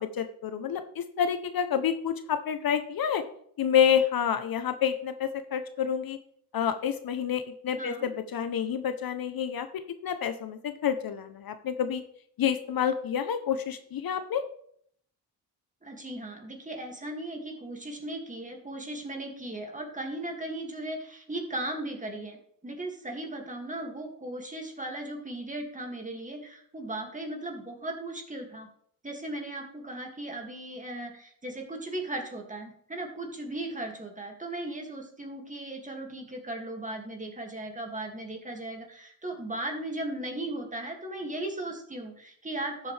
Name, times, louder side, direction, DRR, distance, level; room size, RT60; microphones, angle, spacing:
voice 1, 0.0-3.2 3.6-6.2 6.5-12.0 12.4-14.4, left 8 dB, 60° left, 10 dB, 0.8 m, -28 dB
voice 2, 7.8-8.1 15.8-22.4 22.6-28.7 29.0-42.9, right 1 dB, 20° right, 2 dB, 2.3 m, -37 dB
12.5 x 7.5 x 3.4 m, 0.65 s
cardioid pair, 100°, 41 cm